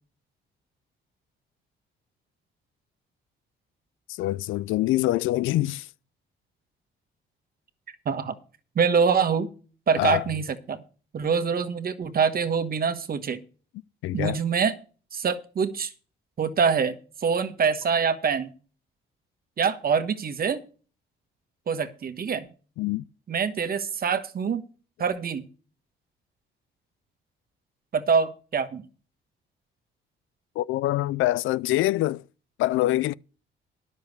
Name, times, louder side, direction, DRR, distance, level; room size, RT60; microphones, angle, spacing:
voice 1, 4.2-5.9 10.0-10.2 14.0-14.4 22.8-23.0 30.6-32.2 32.6-33.1, left 16 dB, 85° left, 0.4 m, -24 dB
voice 2, 8.7-9.5 9.9-10.8 11.1-13.4 14.1-14.7 15.1-15.9 16.4-18.5 19.6-20.6 21.7-22.5 23.3-24.6 25.0-25.4 27.9-28.8, right 6 dB, 50° right, 1.4 m, -25 dB
10.5 x 6.7 x 6.6 m
cardioid pair, 90°, 20 cm